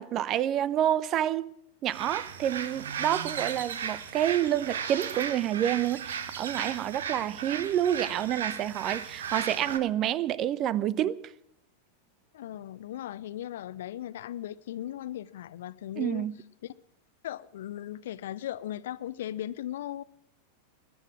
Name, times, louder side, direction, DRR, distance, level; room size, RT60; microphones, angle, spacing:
voice 1, 0.0-1.5 1.8-11.3 16.0-16.4, right 11 dB, 35° right, 0.7 m, -28 dB
sound 1, 1.9-9.8, right 7 dB, 65° right, 1.4 m, -36 dB
voice 2, 12.3-16.3 16.6-16.7 17.2-20.0, left 12 dB, 60° left, 0.7 m, -37 dB
20.5 x 10.5 x 6.2 m
figure-of-eight pair, 90°, 0 cm